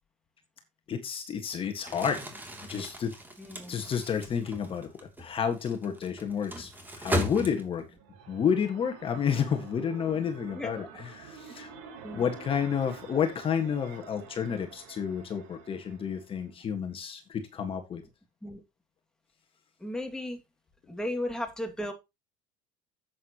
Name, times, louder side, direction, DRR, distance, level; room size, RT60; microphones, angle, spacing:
voice 1, 0.9-2.2 2.6-3.1 3.7-4.9 5.2-6.7 7.0-7.8 8.3-11.7 12.1-18.0, left 7 dB, 35° left, 1.7 m, -30 dB
Crumpling crinkling, 1.8-8.0, equal, 10° right, 2.8 m, -37 dB
voice 2, 3.4-3.8 10.5-10.9 12.0-12.3 18.4-18.6 19.8-20.4 20.9-21.9, left 1 dB, 5° left, 2.3 m, -35 dB
sound 1, 7.8-16.5, right 6 dB, 80° right, 5.6 m, -48 dB
11.0 x 8.2 x 3.0 m
cardioid pair, 125°, 16 cm